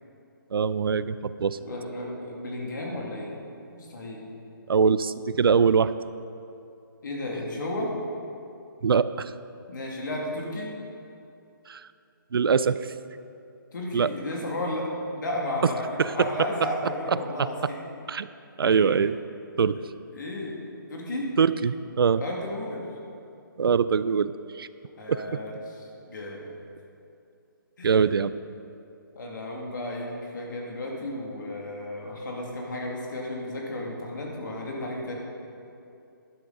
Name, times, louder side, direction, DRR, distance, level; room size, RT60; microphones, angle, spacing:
voice 1, 0.5-1.6 4.7-5.9 8.8-9.3 11.7-11.8 12.3-12.9 13.9-14.1 15.6-15.7 16.0-16.3 17.1-17.5 18.1-18.3 18.6-19.2 19.6-19.8 21.4-22.2 23.6-24.7 25.1-25.2 27.8-28.3, right 6 dB, 85° right, 15 dB, 0.4 m, -23 dB
voice 2, 1.5-3.3 3.7-4.2 7.0-7.9 9.7-10.7 13.7-17.8 18.7-18.9 19.7-19.8 20.1-20.6 20.9-21.3 22.2-22.9 25.0-26.5 27.8-27.9 29.1-35.2, left 1 dB, 60° left, -2 dB, 2.4 m, -33 dB
11.0 x 9.9 x 4.0 m, 2.6 s
hypercardioid pair, 170°, 12 cm